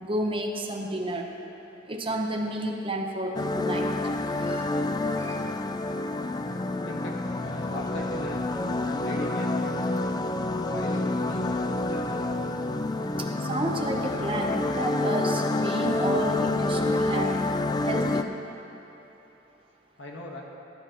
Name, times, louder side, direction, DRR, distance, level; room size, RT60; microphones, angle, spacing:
voice 1, 0.0-1.3 1.9-3.9 4.3-4.8 5.1-5.5 5.9-6.1 13.2-17.5 17.8-18.3, right 1 dB, 25° right, 1 dB, 1.0 m, -31 dB
sound 1, 3.3-18.2, left 2 dB, 20° left, 0.3 m, -28 dB
voice 2, 6.8-8.4 8.8-9.9 10.7-12.4 20.0-20.4, left 1 dB, 75° left, -1 dB, 1.5 m, -39 dB
18.0 x 9.5 x 3.0 m, 3.0 s
head